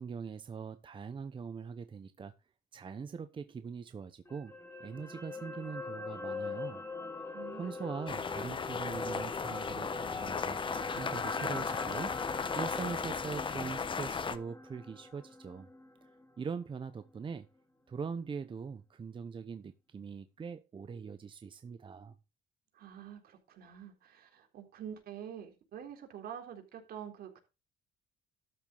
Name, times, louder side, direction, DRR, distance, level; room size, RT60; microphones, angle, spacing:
voice 1, 0.0-2.3 2.7-6.8 7.5-10.6 10.9-12.1 12.6-15.7 16.4-17.5 17.9-22.1, right 5 dB, 30° right, 1.0 m, -42 dB
sound 1, 4.3-16.6 16.9-17.1, left 3 dB, 15° left, 2.5 m, -43 dB
voice 2, 7.3-7.9 22.7-27.4, right 9 dB, 65° right, 3.8 m, -47 dB
sound 2, 8.1-14.4, left 5 dB, 30° left, 1.2 m, -36 dB
12.5 x 7.3 x 4.0 m
cardioid pair, 110°, 17 cm